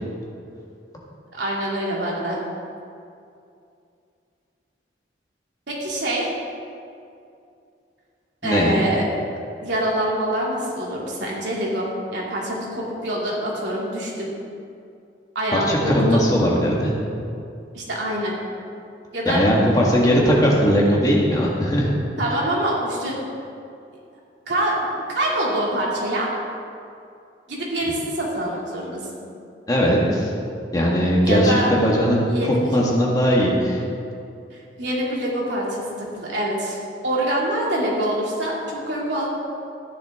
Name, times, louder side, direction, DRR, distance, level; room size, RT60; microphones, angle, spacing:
voice 1, 1.3-2.4 5.7-6.3 8.4-9.0 9.6-14.3 15.3-16.2 17.7-18.4 19.1-19.4 22.2-23.2 24.5-26.3 27.5-29.3 31.2-31.7 32.3-32.7 34.5-36.8 37.0-39.3, right 1 dB, 80° right, -4 dB, 2.7 m, -25 dB
voice 2, 8.4-8.8 15.5-16.9 19.3-21.9 29.7-30.3 30.7-32.2 32.7-33.8, equal, 20° left, -3 dB, 1.7 m, -19 dB
14.0 x 10.0 x 3.7 m, 2.5 s
head